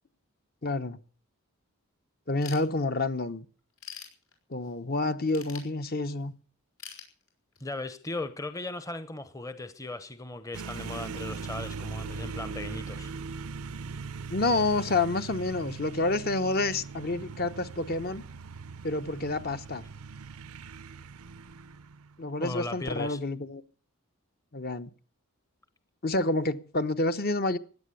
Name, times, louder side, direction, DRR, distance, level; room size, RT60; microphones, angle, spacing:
voice 1, 0.6-1.0 2.3-3.4 4.5-6.3 14.3-18.2 18.8-19.8 22.2-23.6 24.5-24.9 26.0-27.6, left 2 dB, 45° left, 1.0 m, -28 dB
Ratchet pawl / Tools, 2.4-3.2 3.6-4.7 5.3-6.3 6.8-7.8, left 8 dB, 75° left, 5.5 m, -45 dB
voice 2, 7.6-13.1 22.4-23.2, left 2 dB, 15° left, 0.8 m, -37 dB
sound 1, 10.5-22.3, right 5 dB, 90° right, 0.7 m, -40 dB
16.5 x 10.5 x 8.3 m
head